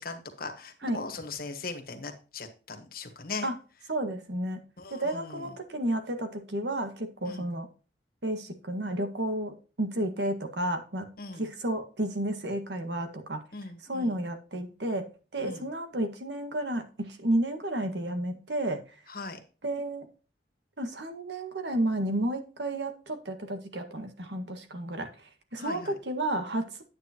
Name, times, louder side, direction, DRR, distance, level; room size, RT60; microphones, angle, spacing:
voice 1, 0.0-3.5 4.8-5.5 7.2-7.5 11.2-11.5 13.5-14.2 15.4-15.7 19.1-19.4 25.6-25.9, left 3 dB, 55° left, 6 dB, 1.6 m, -39 dB
voice 2, 3.9-4.6 4.9-7.7 8.2-11.1 11.4-13.4 13.9-15.1 15.3-18.8 19.6-20.1 20.8-25.2 25.5-26.8, right 1 dB, 80° right, 7 dB, 1.7 m, -31 dB
9.7 x 8.6 x 3.0 m, 0.35 s
head